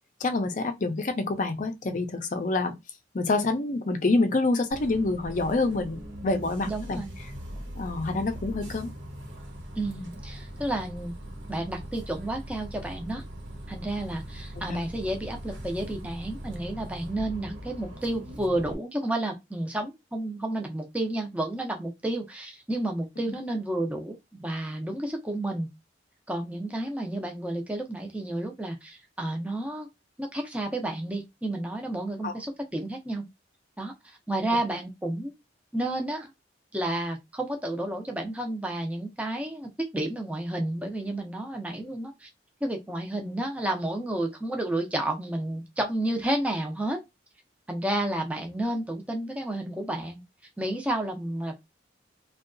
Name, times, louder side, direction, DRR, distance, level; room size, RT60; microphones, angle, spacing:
voice 1, 0.2-2.8 3.1-7.0 7.8-8.9 14.6-14.8 32.2-32.3, left 3 dB, 45° left, 0.5 m, -27 dB
Bus, 4.7-18.7, equal, 80° right, 1.1 m, -40 dB
voice 2, 6.6-7.1 9.8-11.1 11.5-13.2 13.7-25.7 26.3-29.9 30.2-33.2 33.8-35.3 35.7-36.3 36.7-42.3 42.6-47.0 47.7-50.2 50.6-51.5, right 1 dB, 5° right, 0.5 m, -31 dB
2.7 x 2.3 x 2.5 m
head